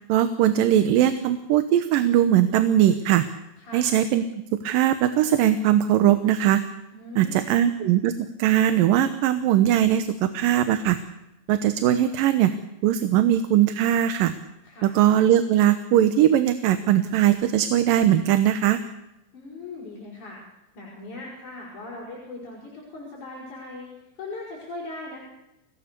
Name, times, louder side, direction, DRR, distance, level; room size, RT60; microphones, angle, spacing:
voice 1, 0.1-3.2 3.7-4.2 4.6-6.6 7.2-8.1 8.4-11.0 11.5-12.5 12.8-14.3 14.8-18.8, right 11 dB, 75° right, 10 dB, 2.6 m, -20 dB
voice 2, 3.6-3.9 6.9-7.6 14.6-14.9 19.3-20.4 20.7-25.2, left 2 dB, 55° left, -4 dB, 6.8 m, -39 dB
29.5 x 17.5 x 6.8 m, 0.91 s
omnidirectional pair, 4.1 m